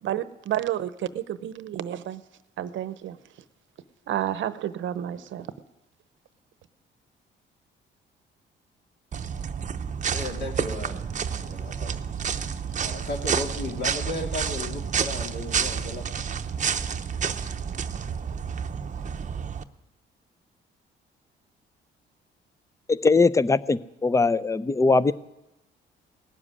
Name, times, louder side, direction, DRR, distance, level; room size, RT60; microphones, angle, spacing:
voice 1, 0.0-2.2 2.6-3.2 4.1-5.5, right 11 dB, 75° right, 14 dB, 0.8 m, -30 dB
sound 1, 9.1-19.6, right 7 dB, 40° right, 0.7 m, -30 dB
voice 2, 10.1-11.9 12.8-16.1, left 2 dB, 60° left, 0 dB, 2.9 m, -35 dB
voice 3, 22.9-25.1, left 3 dB, 15° left, 17 dB, 0.5 m, -21 dB
18.0 x 7.5 x 9.8 m, 0.93 s
cardioid pair, 90°, 20 cm